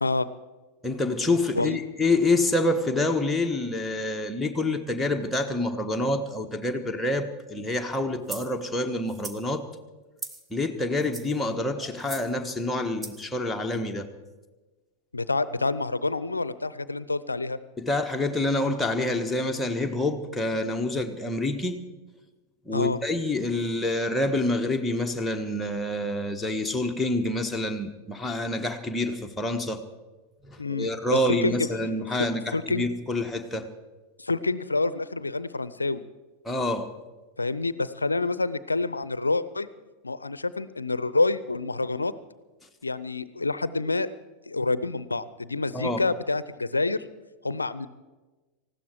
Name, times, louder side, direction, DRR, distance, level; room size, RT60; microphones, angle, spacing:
voice 1, 0.8-9.6 10.5-14.1 17.8-21.8 22.6-29.8 30.4-33.7 36.4-36.9 45.7-46.0, left 2 dB, 5° left, 3 dB, 1.4 m, -27 dB
sound 1, 8.3-8.5 9.1-9.4 10.2-10.5 11.0-11.4 12.0-12.3 13.0-13.3, right 3 dB, 15° right, 1.3 m, -39 dB
voice 2, 15.1-17.6 22.7-23.0 30.6-31.7 32.5-32.8 34.2-36.0 37.4-39.7 40.0-42.1 42.8-44.1 44.5-47.1 47.4-47.9, left 3 dB, 80° left, 17 dB, 0.6 m, -27 dB
19.0 x 15.5 x 4.7 m, 1.2 s
figure-of-eight pair, 90°, 0 cm